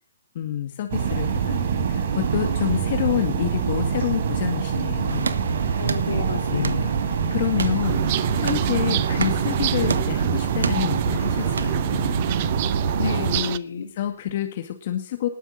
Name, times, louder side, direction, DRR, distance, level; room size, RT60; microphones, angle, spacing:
voice 1, 0.3-5.3 5.6-5.9 6.4-6.8 7.3-8.1 8.4-12.2 13.9-15.3, left 11 dB, 50° left, 5 dB, 2.1 m, -28 dB
sound 1, 0.9-13.4, right 6 dB, 60° right, 4.2 m, -25 dB
sound 2, 5.1-12.5, right 5 dB, 85° right, 1.3 m, -34 dB
voice 2, 5.8-6.9 13.0-13.9, left 5 dB, 75° left, 6 dB, 3.3 m, -30 dB
sound 3, 7.8-13.6, right 14 dB, 40° right, 0.9 m, -30 dB
20.0 x 7.0 x 4.1 m, 0.36 s
hypercardioid pair, 145°, 0 cm